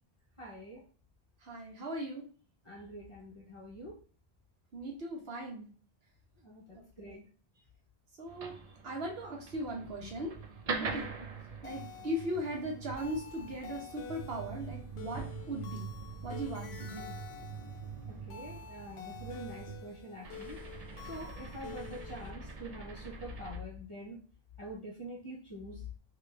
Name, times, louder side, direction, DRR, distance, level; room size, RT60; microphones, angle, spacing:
voice 1, 0.4-0.8 2.6-4.0 6.4-7.2 10.7-11.0 18.1-20.6 21.0-24.2 24.6-25.8, equal, 30° left, -4 dB, 0.8 m, -45 dB
voice 2, 1.4-2.2 4.7-5.7 6.7-7.2 8.2-8.6 8.8-10.3 10.8-11.1 11.6-15.9 16.2-17.1, equal, 75° right, 0 dB, 1.2 m, -38 dB
sound 1, 8.3-23.6, right 5 dB, 50° right, 0.5 m, -44 dB
sound 2, 11.6-22.3, left 9 dB, 75° left, 0.8 m, -49 dB
2.9 x 2.5 x 3.2 m, 0.40 s
omnidirectional pair, 1.0 m